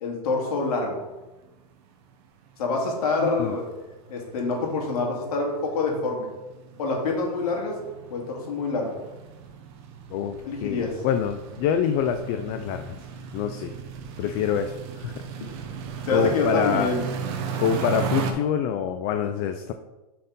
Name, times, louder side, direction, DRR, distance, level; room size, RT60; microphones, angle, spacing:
voice 1, 0.0-1.0 2.6-3.6 4.1-6.3 6.8-7.7 8.1-9.0 10.4-11.0 15.4-15.6 16.0-17.1, left 3 dB, 65° left, 0 dB, 2.1 m, -26 dB
sound 1, 1.2-1.3 1.6-1.8 2.1-2.2 2.5-18.3, right 6 dB, 45° right, 0.8 m, -36 dB
voice 2, 3.2-3.5 10.1-10.3 10.6-13.0 13.3-13.7 14.2-15.1 16.1-16.9 17.6-19.7, left 8 dB, 35° left, 8 dB, 0.4 m, -26 dB
5.5 x 4.3 x 5.1 m, 1.1 s
supercardioid pair, 145°, 20 cm